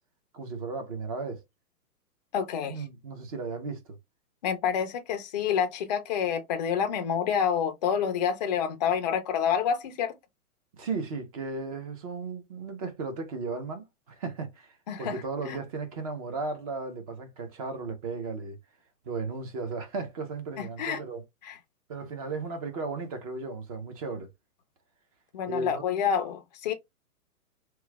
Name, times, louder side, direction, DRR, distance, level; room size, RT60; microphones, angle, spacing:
voice 1, 0.3-1.4 2.7-4.0 10.7-18.6 19.0-21.2 21.9-24.3 25.5-25.8, right 4 dB, 25° right, 0.5 m, -35 dB
voice 2, 2.3-2.8 4.4-10.1 14.9-15.1 15.4-15.6 20.8-21.0 21.5-21.6 25.3-26.7, left 8 dB, 30° left, 0.4 m, -28 dB
3.0 x 2.1 x 3.2 m
hypercardioid pair, 140°, 45 cm